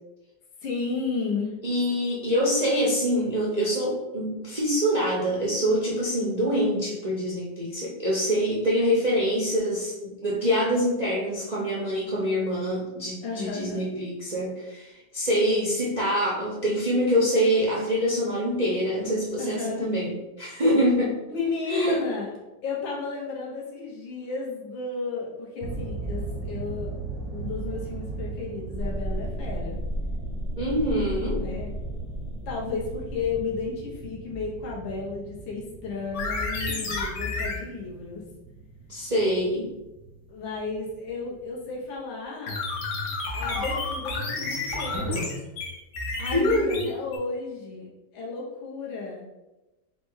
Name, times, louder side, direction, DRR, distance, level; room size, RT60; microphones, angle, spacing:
voice 1, 0.6-1.5 13.2-13.9 19.4-19.9 21.3-22.3 22.6-26.9 27.3-29.8 31.4-31.7 32.5-38.2 40.3-42.6 43.3-45.3 46.2-47.9 48.1-49.3, left 4 dB, 85° left, -4 dB, 1.7 m, -33 dB
voice 2, 1.6-21.2 21.7-22.0 30.6-31.4 38.9-39.7 46.3-46.9, equal, 85° right, -6 dB, 0.3 m, -25 dB
sound 1, 25.6-41.9, right 3 dB, 65° right, 0.8 m, -38 dB
sound 2, 28.8-33.9, equal, 45° left, 1.0 m, -34 dB
sound 3, 36.1-37.6 42.5-47.2, left 2 dB, 70° left, 1.3 m, -30 dB
4.1 x 2.2 x 4.6 m, 1.0 s
omnidirectional pair, 2.1 m